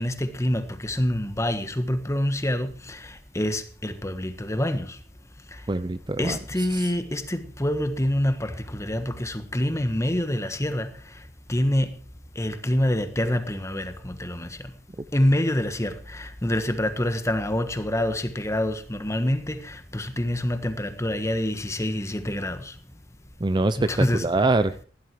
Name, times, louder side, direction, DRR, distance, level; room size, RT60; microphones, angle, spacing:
voice 1, 0.0-5.0 6.2-10.9 11.5-11.9 12.4-14.5 15.1-22.7 23.8-24.3, left 1 dB, 15° left, 1.4 m, -26 dB
voice 2, 5.7-6.9 23.4-24.8, right 2 dB, 25° right, 0.5 m, -24 dB
16.0 x 11.5 x 4.6 m
head